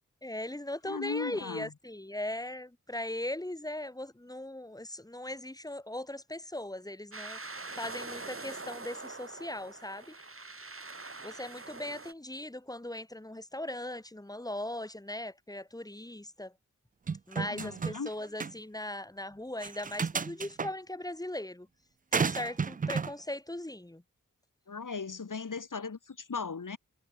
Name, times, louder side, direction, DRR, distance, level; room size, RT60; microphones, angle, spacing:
voice 1, 0.2-7.4 7.8-10.1 11.2-16.5 17.3-21.7 22.1-24.0, left 1 dB, 10° left, 1.6 m, -39 dB
voice 2, 0.8-1.7 17.5-18.1 24.7-26.8, left 5 dB, 80° left, 4.6 m, -37 dB
sound 1, 7.1-12.1, right 3 dB, 45° right, 4.4 m, -44 dB
sound 2, 17.1-18.1 18.4-18.5 19.6-20.7 22.1-23.1, right 5 dB, 30° right, 0.4 m, -32 dB
wide cardioid pair, 55°, 31 cm